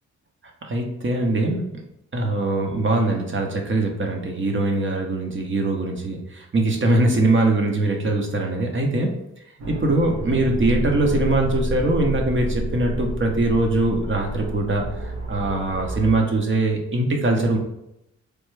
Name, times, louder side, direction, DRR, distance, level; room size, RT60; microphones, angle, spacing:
voice 1, 0.6-1.8 2.1-9.2 9.7-17.6, right 2 dB, 40° right, 2 dB, 0.9 m, -22 dB
sound 1, 9.6-16.2, right 1 dB, 65° right, 1.0 m, -29 dB
3.3 x 2.2 x 3.2 m, 0.82 s
supercardioid pair, 55°, 31 cm